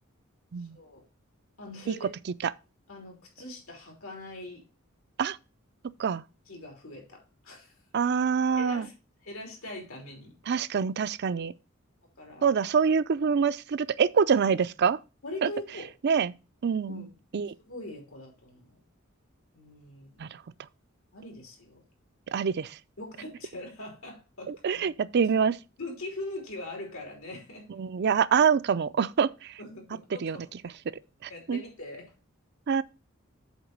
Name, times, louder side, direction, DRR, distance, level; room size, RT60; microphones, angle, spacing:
voice 1, 0.6-1.0 1.6-2.1 2.9-4.6 6.5-7.7 8.6-8.9 9.2-10.3 11.3-11.5 12.2-12.5 15.2-15.9 16.9-17.1 17.7-18.7 19.5-20.3 21.1-21.8 23.0-25.1 25.8-27.7 29.6-30.7 31.3-32.1, left 2 dB, 90° left, 3.3 m, -42 dB
voice 2, 7.9-8.9 10.5-11.5 12.4-15.0 15.4-15.5 16.0-16.3 16.6-17.1 17.3-17.5 20.2-20.3 22.3-22.8 24.5-25.6 27.8-29.5 30.2-30.4 31.2-31.6 32.7-32.8, right 6 dB, 55° right, 0.4 m, -25 dB
8.0 x 3.9 x 6.6 m
head